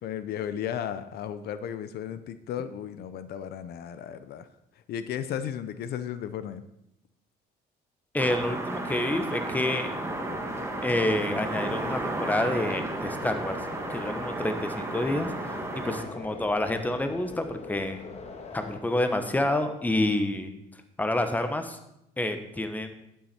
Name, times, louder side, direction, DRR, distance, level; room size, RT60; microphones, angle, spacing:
voice 1, 0.0-4.5 4.9-6.6, left 9 dB, 70° left, 13 dB, 0.7 m, -34 dB
voice 2, 8.1-9.9 10.8-13.5 13.9-18.0 18.5-20.5 21.0-21.8 22.2-22.9, left 1 dB, 10° left, 7 dB, 1.2 m, -28 dB
sound 1, 8.2-16.0, right 2 dB, 15° right, 1.7 m, -33 dB
sound 2, 10.0-18.8, left 4 dB, 40° left, 1.6 m, -43 dB
11.0 x 9.2 x 4.4 m, 0.81 s
cardioid pair, 110°, 17 cm